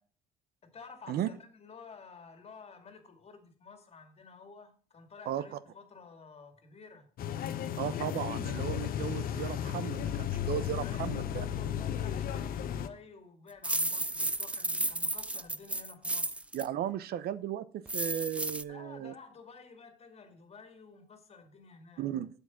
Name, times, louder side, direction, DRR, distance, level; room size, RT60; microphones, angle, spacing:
voice 1, 0.6-7.1 10.8-16.4 18.7-22.0, left 5 dB, 35° left, 2.2 m, -52 dB
voice 2, 5.3-5.6 7.8-11.5 16.5-19.1 22.0-22.3, right 11 dB, 65° right, 0.8 m, -35 dB
sound 1, 7.2-12.9, left 10 dB, 60° left, 1.0 m, -34 dB
sound 2, 13.6-16.7 17.9-18.6, right 2 dB, 5° right, 0.4 m, -33 dB
8.0 x 7.1 x 6.0 m
cardioid pair, 110°, 17 cm